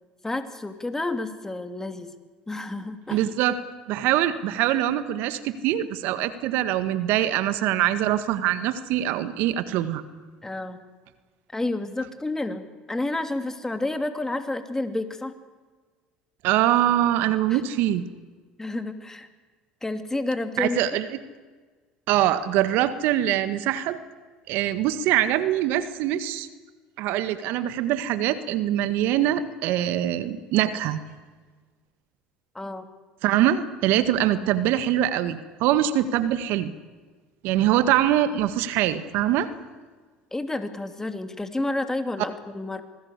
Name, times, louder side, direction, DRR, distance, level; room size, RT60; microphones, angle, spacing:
voice 1, 0.2-2.1 2.5-3.3 10.4-10.8 11.5-15.3 17.5-17.6 18.6-19.3 19.8-21.0 32.5-32.9 40.3-42.8, left 2 dB, 15° left, 8 dB, 2.8 m, -30 dB
voice 2, 3.1-3.5 3.9-10.0 16.4-18.0 20.6-21.1 22.1-24.0 24.5-26.5 27.0-31.0 33.2-36.7 37.4-39.5, right 12 dB, 65° right, 12 dB, 1.7 m, -23 dB
26.5 x 19.5 x 8.3 m, 1.4 s
hypercardioid pair, 70°, 4 cm